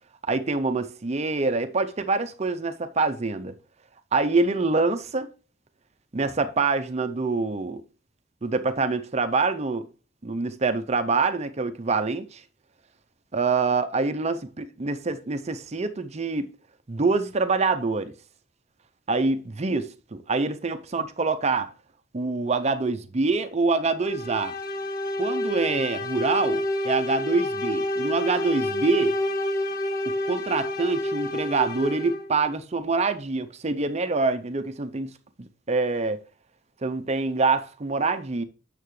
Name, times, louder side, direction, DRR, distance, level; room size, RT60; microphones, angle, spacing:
voice 1, 0.2-3.6 4.1-5.3 6.1-7.8 8.4-9.9 10.2-12.4 13.3-16.5 16.9-18.1 19.1-21.7 22.1-24.5 25.2-29.2 30.3-35.1 35.4-36.2 36.8-38.4, right 3 dB, 35° right, 0.6 m, -25 dB
sound 1, 24.0-32.4, left 1 dB, 50° left, 0.8 m, -29 dB
8.9 x 6.6 x 3.2 m
head